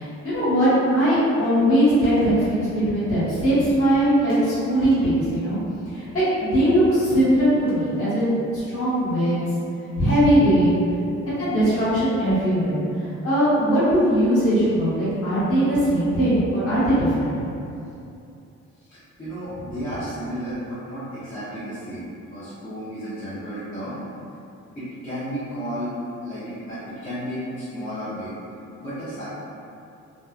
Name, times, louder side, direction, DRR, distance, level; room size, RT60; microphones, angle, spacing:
voice 1, 0.0-5.6 5.9-9.5 10.0-10.8 11.2-17.3, equal, 50° left, -12 dB, 1.4 m, -20 dB
sound 1, 2.0-2.7 4.3-5.1 7.4-8.5, equal, 20° right, 0.5 m, -38 dB
voice 2, 18.8-24.0 24.7-28.3 28.8-29.2, equal, 25° left, -15 dB, 0.9 m, -33 dB
2.7 x 2.0 x 2.3 m, 2.6 s
cardioid pair, 90°, 30 cm